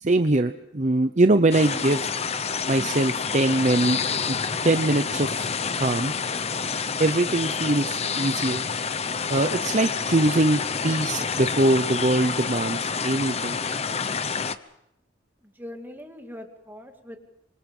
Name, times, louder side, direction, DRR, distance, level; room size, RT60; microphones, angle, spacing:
voice 1, 0.0-2.1 2.7-4.0 4.3-4.4 4.6-5.3 5.8-6.1 7.0-8.6 9.3-13.6, right 2 dB, 35° right, 8 dB, 0.8 m, -22 dB
sound 1, 1.5-14.6, left 5 dB, 35° left, 0.8 m, -28 dB
voice 2, 15.4-17.2, left 1 dB, 10° right, 3 dB, 2.4 m, -41 dB
26.0 x 25.0 x 5.5 m, 0.81 s
head